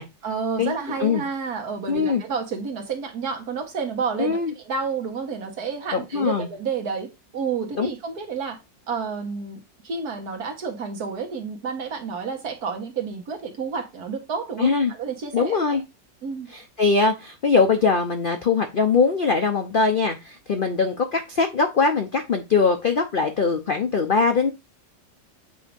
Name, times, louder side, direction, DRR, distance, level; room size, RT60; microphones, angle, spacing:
voice 1, 0.2-7.1 7.3-8.6 8.9-15.8 16.2-16.5, right 5 dB, 60° right, 1.7 m, -30 dB
voice 2, 1.9-2.2 4.2-4.5 5.9-6.5 7.8-7.9 14.6-14.9 15.3-15.8 16.5-24.5, left 4 dB, 65° left, 0.5 m, -21 dB
8.2 x 2.7 x 5.1 m
omnidirectional pair, 1.9 m